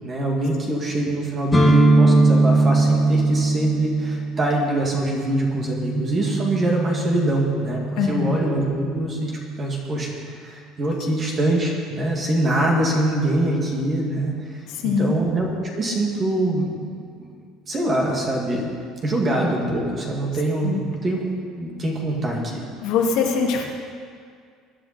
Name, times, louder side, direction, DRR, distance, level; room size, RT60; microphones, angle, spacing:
voice 1, 0.0-7.8 8.1-14.3 15.0-15.5 15.8-17.3 17.7-18.6 19.0-21.3 21.6-22.6, right 1 dB, 20° right, -1 dB, 2.3 m, -24 dB
sound 1, 1.5-9.3, right 2 dB, 10° left, 1.4 m, -21 dB
voice 2, 8.0-8.3 14.7-15.1 20.6-20.8 22.8-23.6, left 5 dB, 60° left, -1 dB, 2.3 m, -22 dB
22.0 x 9.8 x 4.4 m, 2.1 s
cardioid pair, 175°, 0 cm